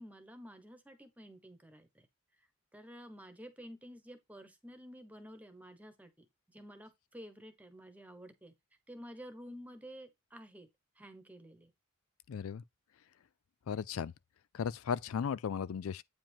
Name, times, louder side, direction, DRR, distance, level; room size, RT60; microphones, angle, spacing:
voice 1, 0.0-2.1 2.7-8.5 8.9-10.7 11.0-11.7, equal, 5° right, 1.3 m, -51 dB
voice 2, 12.3-12.6 13.7-14.1 14.5-16.0, left 7 dB, 70° left, 0.4 m, -36 dB
8.8 x 5.1 x 3.5 m
head